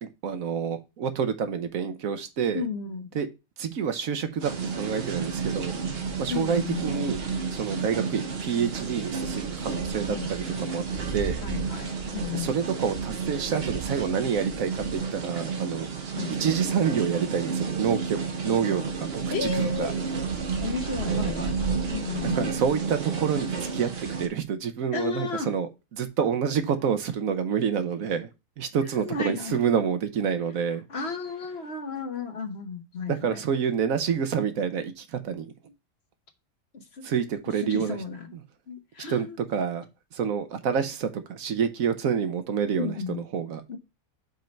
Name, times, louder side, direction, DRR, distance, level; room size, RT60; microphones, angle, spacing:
voice 1, 0.0-2.6 3.1-3.3 3.6-5.7 6.2-7.2 7.5-10.8 11.1-11.4 12.3-15.9 16.4-19.9 22.2-28.3 28.6-30.8 33.1-35.5 37.0-38.0 38.3-38.4 39.1-39.9 40.1-43.6, right 7 dB, 75° right, 1.2 m, -28 dB
voice 2, 2.5-3.1 6.3-6.8 10.1-10.3 11.4-12.5 16.1-16.3 19.3-20.0 20.6-22.5 24.9-25.5 29.0-29.6 30.9-33.4 36.7-37.1 37.6-38.3 38.7-39.4 42.7-43.2 43.7-43.8, left 5 dB, 50° left, 1.2 m, -33 dB
sound 1, 4.4-24.3, right 5 dB, 50° right, 1.2 m, -31 dB
5.4 x 4.5 x 5.1 m
omnidirectional pair, 1.5 m